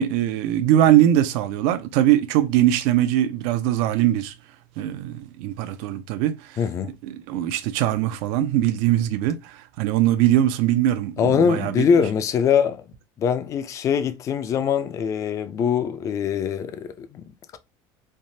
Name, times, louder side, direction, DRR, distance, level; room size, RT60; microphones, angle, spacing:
voice 1, 0.0-4.3 4.8-6.4 7.0-11.9, right 12 dB, 70° right, 0.4 m, -21 dB
voice 2, 6.6-6.9 11.2-12.8 13.2-17.6, left 7 dB, 30° left, 0.4 m, -23 dB
3.2 x 2.1 x 2.7 m
cardioid pair, 140°, 10 cm